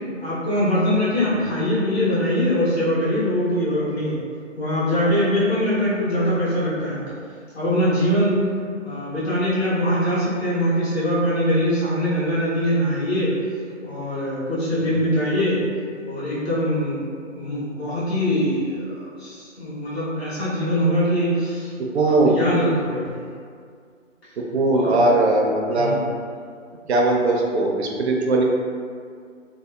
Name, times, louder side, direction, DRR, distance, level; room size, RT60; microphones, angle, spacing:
voice 1, 0.2-4.2 4.6-7.0 7.5-8.4 8.8-13.3 13.8-15.6 16.0-18.9 19.2-21.7 22.0-23.0 24.7-25.0 25.7-26.1, equal, 55° left, -10 dB, 1.2 m, -22 dB
voice 2, 21.8-22.4 24.5-25.9 26.9-28.4, right 2 dB, 60° right, 0 dB, 0.5 m, -20 dB
2.7 x 2.0 x 2.2 m, 2.1 s
hypercardioid pair, 165°, 38 cm